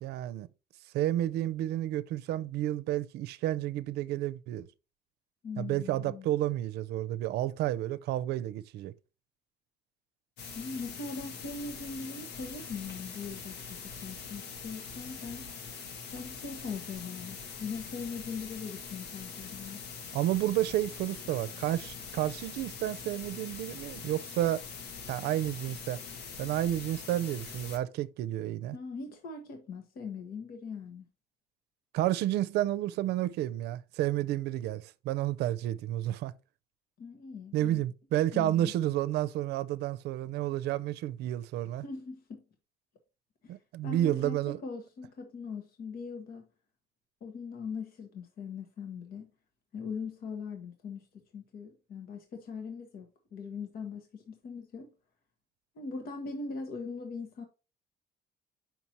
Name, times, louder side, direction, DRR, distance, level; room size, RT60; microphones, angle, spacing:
voice 1, 0.0-0.5 0.9-4.7 5.6-8.9 20.1-24.6 25.1-26.0 26.4-28.8 31.9-36.3 37.5-41.8 43.5-44.6, right 13 dB, 80° right, 0.5 m, -31 dB
voice 2, 5.4-6.3 10.5-15.5 16.1-19.8 28.7-31.1 37.0-37.8 38.3-38.7 41.8-42.4 43.4-43.6 43.8-46.5 47.2-49.3 49.7-51.1 51.3-54.9 55.7-57.4, left 5 dB, 60° left, 1.3 m, -40 dB
sound 1, 10.4-27.8, left 5 dB, 80° left, 1.4 m, -43 dB
7.1 x 5.8 x 3.0 m
cardioid pair, 110°, 17 cm